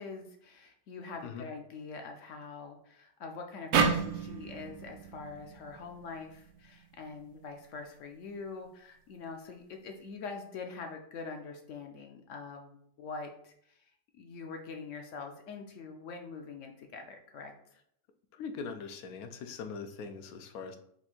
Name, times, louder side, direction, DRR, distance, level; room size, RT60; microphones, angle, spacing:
voice 1, 0.0-13.9 14.1-17.5, left 4 dB, 65° left, 3 dB, 0.8 m, -44 dB
sound 1, 3.7-7.0, right 5 dB, 75° right, 1.0 m, -31 dB
voice 2, 18.3-20.8, left 5 dB, 85° left, 7 dB, 1.1 m, -41 dB
4.3 x 2.5 x 4.2 m, 0.68 s
omnidirectional pair, 1.5 m